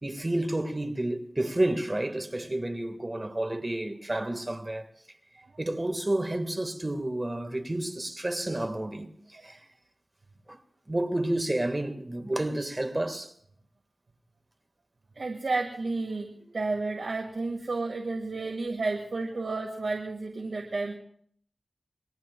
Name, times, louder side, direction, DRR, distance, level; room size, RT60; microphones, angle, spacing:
voice 1, 0.0-4.9 5.6-9.6 10.5-10.6 10.9-13.3, right 1 dB, 30° right, 1.6 m, -30 dB
voice 2, 15.2-21.0, right 3 dB, 80° right, 1.8 m, -31 dB
28.0 x 22.0 x 2.3 m
wide cardioid pair, 65°, 0 cm